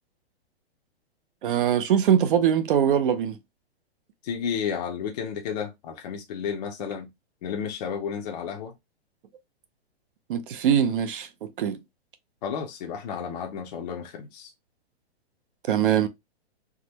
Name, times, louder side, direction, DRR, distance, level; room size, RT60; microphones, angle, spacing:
voice 1, 1.4-3.4 10.3-11.8 15.7-16.1, right 9 dB, 55° right, 0.5 m, -22 dB
voice 2, 4.2-7.1 7.4-8.7 12.4-14.5, left 7 dB, 40° left, 0.5 m, -32 dB
3.5 x 2.1 x 2.8 m
hypercardioid pair, 160°, 32 cm